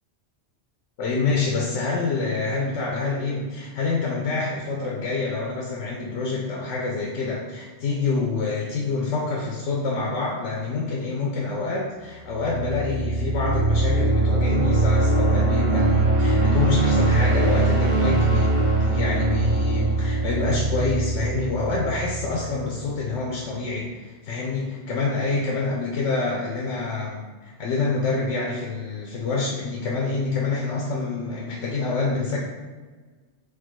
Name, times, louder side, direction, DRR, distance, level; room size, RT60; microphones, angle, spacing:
voice 1, 1.0-18.5 18.8-32.4, left 4 dB, 85° left, -2 dB, 1.0 m, -27 dB
sound 1, 12.2-23.0, right 2 dB, 40° right, 0.5 m, -22 dB
4.5 x 2.3 x 4.4 m, 1.4 s
omnidirectional pair, 1.2 m